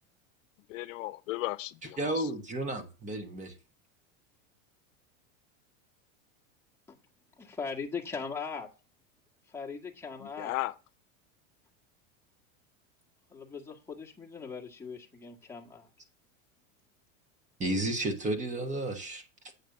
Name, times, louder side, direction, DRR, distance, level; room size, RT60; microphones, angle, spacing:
voice 1, 0.7-2.3 10.2-10.7, left 18 dB, 80° left, 0.7 m, -36 dB
voice 2, 2.0-3.5 17.6-19.2, right 1 dB, 20° right, 1.3 m, -32 dB
voice 3, 7.4-8.7 9.5-10.5 13.3-15.9, left 5 dB, 5° left, 1.5 m, -39 dB
8.3 x 3.4 x 6.6 m
supercardioid pair, 135°, 38 cm